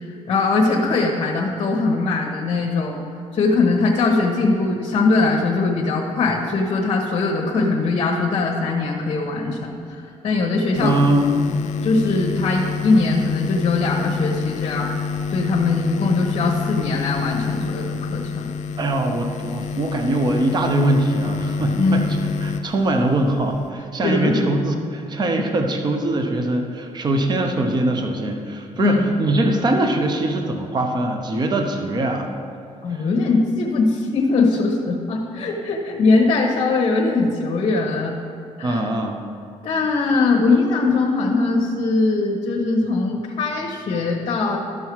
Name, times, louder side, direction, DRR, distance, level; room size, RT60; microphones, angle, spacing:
voice 1, 0.3-3.0 3.3-11.0 11.5-14.9 15.3-18.4 21.8-22.0 24.0-24.5 28.7-29.1 32.8-38.1 38.6-38.8 39.6-44.6, left 3 dB, 50° left, -1 dB, 1.0 m, -21 dB
sound 1, 10.8-23.7, left 5 dB, 75° left, 0.4 m, -27 dB
voice 2, 10.8-11.3 18.8-32.3 32.9-33.0 38.6-39.2, right 2 dB, 35° right, 4 dB, 0.8 m, -22 dB
12.5 x 5.6 x 4.6 m, 2.5 s
cardioid pair, 125°, 12 cm